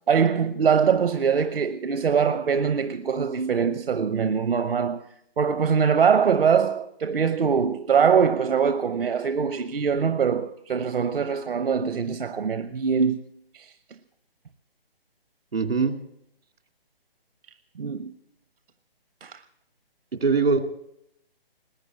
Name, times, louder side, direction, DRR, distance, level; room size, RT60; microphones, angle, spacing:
voice 1, 0.1-5.1 5.4-13.2 13.5-13.7 17.8-18.1 19.2-19.4, right 6 dB, 65° right, 1.0 m, -23 dB
voice 2, 15.5-16.0 20.2-20.6, right 4 dB, 85° right, 2.5 m, -21 dB
20.5 x 8.9 x 7.6 m
figure-of-eight pair, 155°, 30 cm